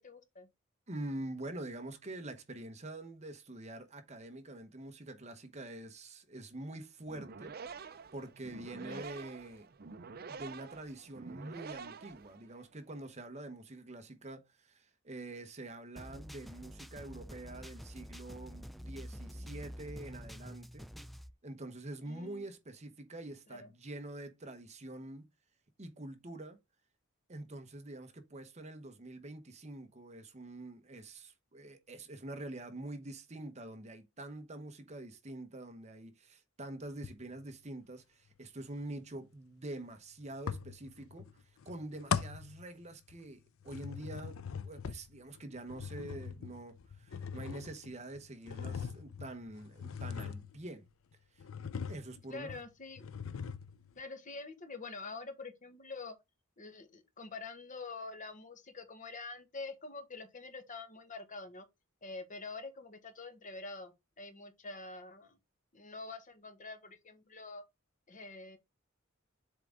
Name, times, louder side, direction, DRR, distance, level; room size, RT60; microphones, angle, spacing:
voice 1, 0.0-0.5 8.7-9.0 22.0-22.5 23.5-23.7 52.3-53.1 54.0-56.1 56.6-61.6 62.0-65.4 65.7-67.6 68.1-68.6, left 3 dB, 40° left, 1.3 m, -46 dB
voice 2, 0.9-9.7 10.3-20.9 21.4-25.2 25.8-26.6 27.3-41.3 41.6-50.9 51.9-52.6, right 2 dB, 35° right, 1.1 m, -46 dB
sound 1, 7.0-12.7, right 5 dB, 50° right, 0.6 m, -48 dB
sound 2, 16.0-21.3, equal, ahead, 0.4 m, -47 dB
sound 3, 37.0-37.5 40.5-41.3 41.6-43.3 43.6-50.9 51.4-52.2 52.5-52.6 53.0-53.9, left 6 dB, 80° left, 0.6 m, -41 dB
7.5 x 3.8 x 3.5 m
head